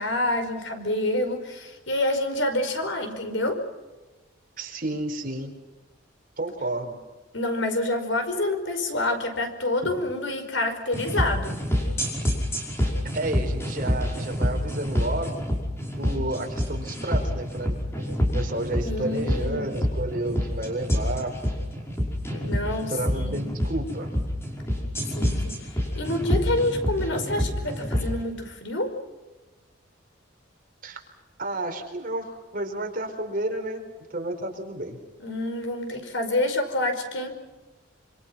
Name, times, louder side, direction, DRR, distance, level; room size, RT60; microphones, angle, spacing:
voice 1, 0.0-3.6 7.3-11.6 18.8-19.7 22.3-23.5 25.1-25.6 26.0-28.9 35.2-37.3, left 1 dB, 70° left, 6 dB, 5.2 m, -27 dB
voice 2, 4.6-5.5 6.4-7.0 9.8-9.9 13.1-15.4 16.0-17.8 18.3-21.3 22.9-24.1 30.8-31.0 31.4-35.0, right 2 dB, 45° right, 3 dB, 4.7 m, -31 dB
sound 1, 10.9-28.1, equal, 15° left, 5.4 m, -27 dB
27.0 x 27.0 x 5.9 m, 1.2 s
head